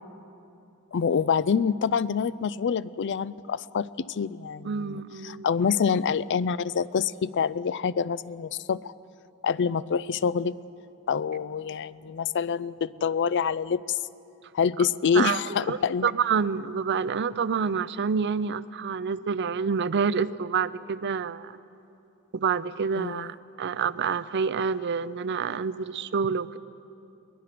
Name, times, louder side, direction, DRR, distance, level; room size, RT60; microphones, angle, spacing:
voice 1, 0.9-8.9 9.4-10.5 11.1-14.0 14.5-16.1 23.0-23.3, left 6 dB, 55° left, 18 dB, 0.4 m, -26 dB
voice 2, 4.6-5.5 15.1-21.6 22.3-26.6, right 6 dB, 55° right, 16 dB, 0.5 m, -28 dB
22.5 x 20.5 x 6.0 m, 2.8 s
head